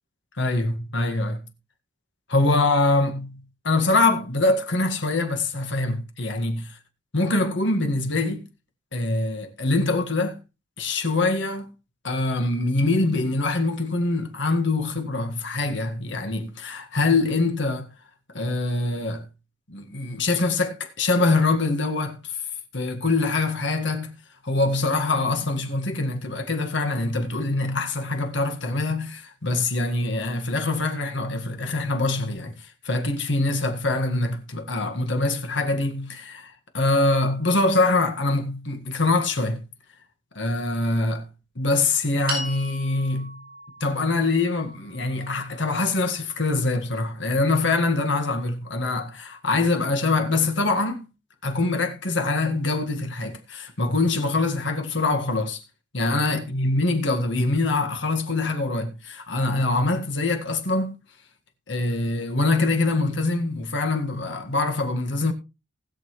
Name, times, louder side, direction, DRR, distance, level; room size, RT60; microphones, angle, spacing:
voice 1, 0.4-1.4 2.3-6.6 7.1-8.5 8.9-10.4 10.8-11.7 12.0-17.9 18.3-19.3 19.7-22.3 22.7-24.2 24.4-39.6 40.4-41.3 41.6-43.4 43.8-51.1 51.4-55.6 55.9-61.0 61.7-65.3, left 2 dB, 65° left, 1.8 m, -24 dB
sound 1, 42.3-46.7, right 1 dB, 50° right, 6.3 m, -38 dB
19.5 x 6.8 x 3.2 m
head